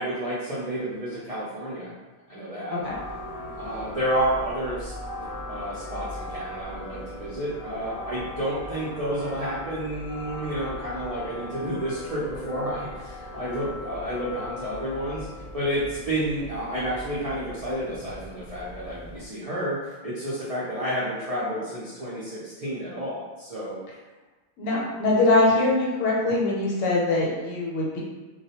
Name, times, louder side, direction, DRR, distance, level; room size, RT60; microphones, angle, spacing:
voice 1, 0.0-1.9 2.3-2.8 3.6-4.9 5.5-15.3 15.5-19.8 20.0-23.8, right 1 dB, 65° right, -9 dB, 0.3 m, -30 dB
sound 1, 2.8-19.3, left 1 dB, 55° left, 0.8 m, -39 dB
voice 2, 24.6-28.0, left 2 dB, 80° left, -4 dB, 1.0 m, -22 dB
2.3 x 2.1 x 2.8 m, 1.2 s
omnidirectional pair, 1.4 m